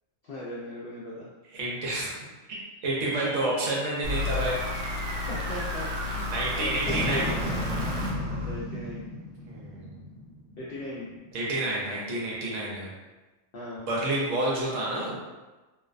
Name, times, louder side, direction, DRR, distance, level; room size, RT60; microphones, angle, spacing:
voice 1, 0.2-1.3 1.6-1.7 3.2-3.5 5.3-7.3 8.3-9.1 10.6-11.1 13.5-13.9, left 1 dB, 80° left, -7 dB, 0.5 m, -38 dB
voice 2, 1.5-2.2 2.8-4.6 6.3-7.3 9.4-10.0 11.3-12.9 13.9-15.2, right 2 dB, 65° right, -4 dB, 0.9 m, -29 dB
sound 1, 2.8-11.4, equal, 5° right, 0.7 m, -36 dB
sound 2, 4.0-9.0, left 2 dB, 85° right, 0.4 m, -32 dB
2.6 x 2.1 x 2.4 m, 1.2 s
omnidirectional pair, 1.5 m